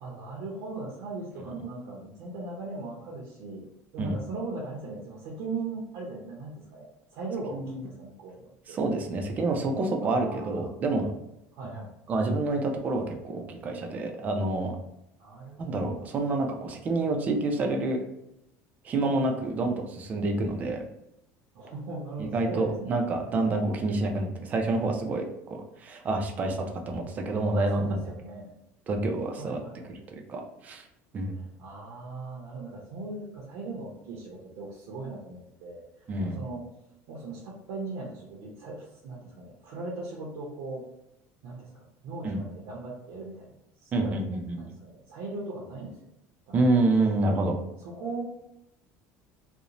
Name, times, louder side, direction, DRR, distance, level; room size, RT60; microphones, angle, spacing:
voice 1, 0.0-3.7 3.9-8.8 10.0-10.8 11.5-11.9 15.2-16.1 19.0-19.4 21.5-23.0 27.7-28.5 29.4-29.9 31.3-35.8 36.2-36.6 37.1-40.8 41.4-43.5 43.8-46.0 46.5-46.7 47.8-48.2, right 3 dB, 70° right, -4 dB, 0.6 m, -39 dB
voice 2, 7.5-7.9 8.7-11.1 12.1-14.8 15.6-18.0 18.8-20.8 22.2-25.2 25.8-28.0 28.9-29.6 29.9-30.0 30.3-30.8 31.1-31.4 36.1-36.4 42.2-42.4 43.9-44.7 46.5-47.6, right 2 dB, 25° right, 3 dB, 0.4 m, -28 dB
2.5 x 2.0 x 2.9 m, 0.84 s
cardioid pair, 160°, 6 cm